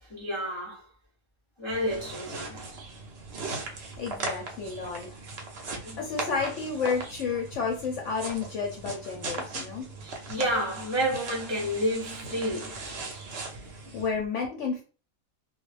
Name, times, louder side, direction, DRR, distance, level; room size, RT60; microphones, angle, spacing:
voice 1, 0.0-0.9 1.6-2.8 5.8-6.0 10.0-12.7, equal, 50° left, 0.3 m, -30 dB
sound 1, 1.7-14.1, right 3 dB, 60° right, 0.7 m, -39 dB
voice 2, 4.0-5.2 5.5-9.9 13.9-14.8, left 5 dB, 70° left, 0.8 m, -31 dB
2.4 x 2.0 x 3.1 m
omnidirectional pair, 1.5 m